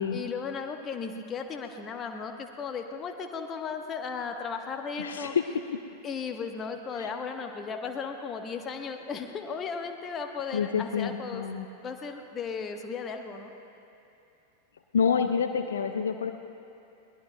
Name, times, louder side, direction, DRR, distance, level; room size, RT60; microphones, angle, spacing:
voice 1, 0.1-5.3 6.0-11.4 11.8-13.5, left 5 dB, 25° left, 5 dB, 1.0 m, -36 dB
voice 2, 5.0-5.4 7.0-7.1 10.5-11.7 14.9-16.3, left 6 dB, 65° left, 7 dB, 0.5 m, -27 dB
21.5 x 19.5 x 2.2 m, 2.8 s
figure-of-eight pair, 90°, 0 cm